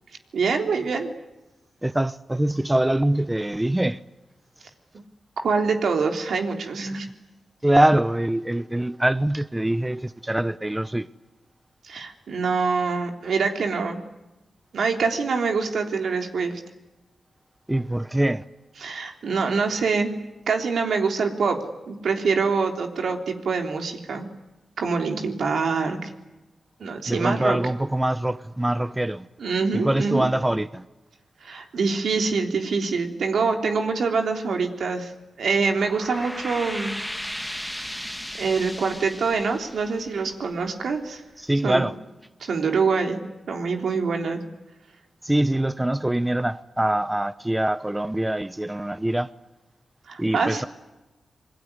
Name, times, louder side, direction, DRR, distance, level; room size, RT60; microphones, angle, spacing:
voice 1, 0.3-1.1 4.9-5.0 5.4-7.1 11.8-14.0 14.7-16.6 18.8-24.3 24.8-26.1 26.8-27.6 29.4-30.3 31.4-35.1 35.4-36.9 37.8-38.1 38.4-41.2 41.6-41.9 42.4-43.2 43.5-44.4 50.1-50.7, right 4 dB, 80° right, 3.4 m, -25 dB
voice 2, 1.8-4.0 7.6-11.1 17.7-18.4 27.1-29.3 29.8-30.8 41.4-41.9 45.2-49.3 50.2-50.7, right 1 dB, 15° right, 0.9 m, -23 dB
sound 1, 35.6-40.8, equal, ahead, 1.7 m, -36 dB
27.5 x 22.0 x 9.7 m
cardioid pair, 60°, 0 cm